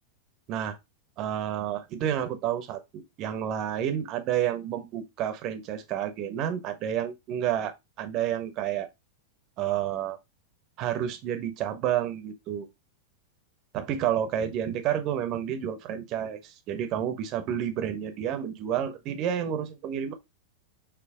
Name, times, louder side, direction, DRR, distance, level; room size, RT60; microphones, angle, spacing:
voice 1, 1.2-8.9 9.6-10.2 10.8-12.7 13.7-20.1, right 10 dB, 40° right, 1.3 m, -30 dB
6.4 x 3.1 x 4.8 m
figure-of-eight pair, 90°, 0 cm